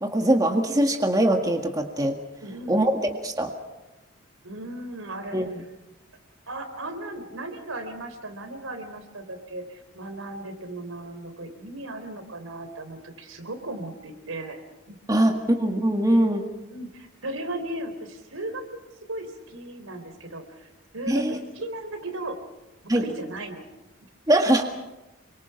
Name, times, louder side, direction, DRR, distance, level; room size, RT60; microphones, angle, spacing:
voice 1, 0.0-2.2 2.7-3.5 5.3-5.5 15.1-15.3 15.6-16.5 21.1-21.4 22.9-23.0 24.3-24.6, right 1 dB, 15° right, 4 dB, 1.8 m, -22 dB
voice 2, 2.4-2.9 4.4-5.7 6.5-14.6 14.9-15.0 16.7-18.8 19.1-22.4 22.9-23.7 24.4-24.5, right 1 dB, 85° right, 7 dB, 3.8 m, -36 dB
27.5 x 24.5 x 5.9 m, 1.0 s
head